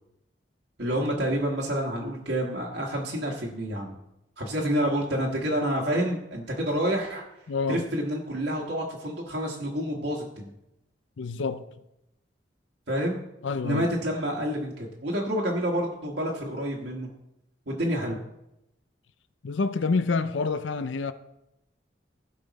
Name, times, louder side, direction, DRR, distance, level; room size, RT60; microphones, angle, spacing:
voice 1, 0.8-3.9 4.4-7.2 7.7-10.5 12.9-13.2 13.6-17.1 17.7-18.2, equal, 75° right, 1.5 m, -28 dB
voice 2, 7.5-7.8 11.2-11.6 13.4-13.9 19.4-21.1, left 4 dB, 90° left, 0.5 m, -27 dB
16.0 x 5.5 x 4.1 m
head